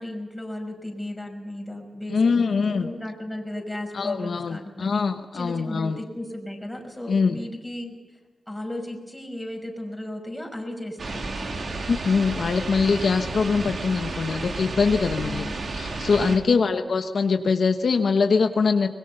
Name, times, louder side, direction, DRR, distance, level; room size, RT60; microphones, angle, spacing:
voice 1, 0.0-2.4 2.7-5.0 5.3-8.0 8.5-11.7 15.2-15.6 16.3-16.6, left 1 dB, 5° left, 1 dB, 5.6 m, -35 dB
voice 2, 2.1-2.9 3.9-6.0 7.1-7.4 11.9-15.5 15.7-18.9, left 5 dB, 65° left, 6 dB, 1.1 m, -23 dB
sound 1, 11.0-16.4, right 3 dB, 55° right, 2.9 m, -32 dB
25.0 x 21.5 x 5.6 m, 1.3 s
wide cardioid pair, 105°, 0 cm